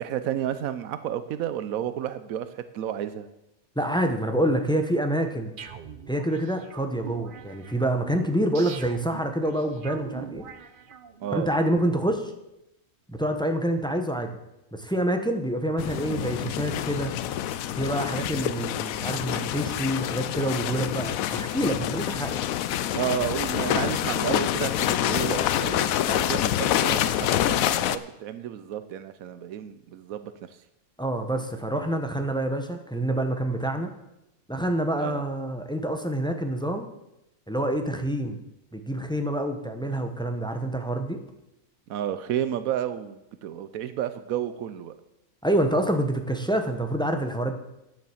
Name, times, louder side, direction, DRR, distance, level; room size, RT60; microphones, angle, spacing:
voice 1, 0.0-3.3 11.2-11.5 22.9-30.3 35.0-35.2 41.9-44.9, right 10 dB, 85° right, 12 dB, 1.1 m, -31 dB
voice 2, 3.8-5.5 6.1-10.5 11.3-12.3 13.1-14.4 14.7-17.1 17.7-22.4 31.0-33.9 34.5-36.9 37.5-38.4 38.7-41.2 45.4-47.5, right 1 dB, 5° left, 5 dB, 0.8 m, -27 dB
sound 1, 5.6-11.4, right 6 dB, 50° right, 0.7 m, -43 dB
sound 2, 15.8-28.0, left 11 dB, 80° left, 1.0 m, -27 dB
9.9 x 7.6 x 7.2 m, 0.89 s
omnidirectional pair, 1.4 m